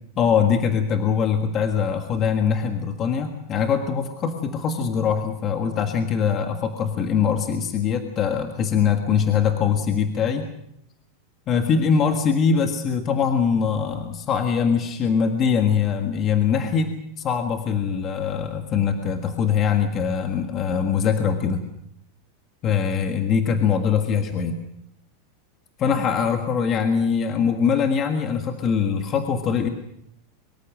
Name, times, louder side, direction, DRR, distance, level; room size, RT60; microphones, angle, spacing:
voice 1, 0.2-10.5 11.5-16.9 17.2-21.6 22.6-24.6 25.8-29.7, left 6 dB, 25° left, 5 dB, 1.6 m, -22 dB
24.0 x 23.0 x 6.2 m, 0.75 s
supercardioid pair, 175°, 0 cm